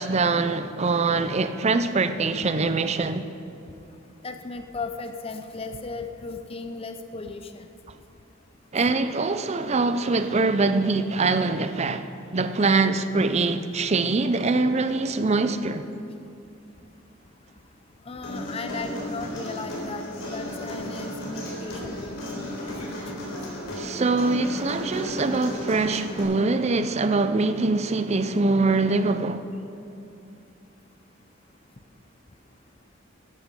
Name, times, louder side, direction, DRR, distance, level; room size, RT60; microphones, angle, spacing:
voice 1, 0.0-3.2 8.7-15.9 23.8-29.5, right 3 dB, 35° right, 0.5 m, -23 dB
voice 2, 4.2-7.7 14.5-14.6 18.0-23.2, left 3 dB, 30° left, 0.6 m, -36 dB
Human voice, 18.2-26.2, left 1 dB, 90° left, 3.8 m, -34 dB
14.0 x 11.0 x 5.4 m
head